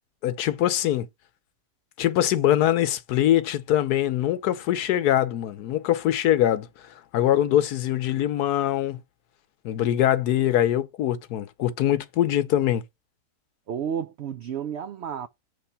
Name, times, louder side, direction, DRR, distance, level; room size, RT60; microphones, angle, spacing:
voice 1, 0.2-1.1 2.0-6.7 7.1-9.0 9.6-12.8, left 12 dB, 75° left, 1.2 m, -23 dB
voice 2, 13.7-15.3, right 8 dB, 80° right, 0.6 m, -31 dB
7.6 x 3.3 x 5.6 m
omnidirectional pair, 1.7 m